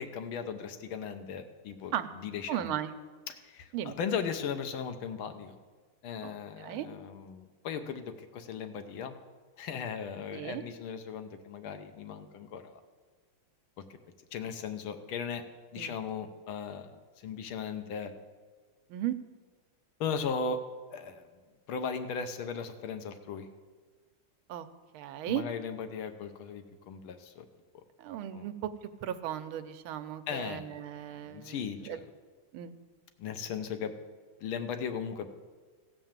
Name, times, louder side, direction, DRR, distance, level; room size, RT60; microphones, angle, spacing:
voice 1, 0.0-2.8 3.3-5.6 6.0-9.1 9.6-12.8 14.3-15.4 15.7-18.1 20.0-20.6 20.9-21.3 21.7-23.5 25.3-27.4 28.3-28.5 30.3-32.1 33.2-33.9 34.4-35.3, left 6 dB, 80° left, 8 dB, 1.7 m, -37 dB
voice 2, 2.5-2.9 3.7-4.0 6.2-6.3 6.6-6.9 10.3-10.6 15.8-15.9 18.9-19.2 24.5-24.7 24.9-25.4 28.0-28.7 29.0-31.6 31.8-32.0 32.5-32.7, right 11 dB, 85° right, 10 dB, 1.5 m, -36 dB
16.0 x 5.4 x 7.3 m, 1.4 s
omnidirectional pair, 2.3 m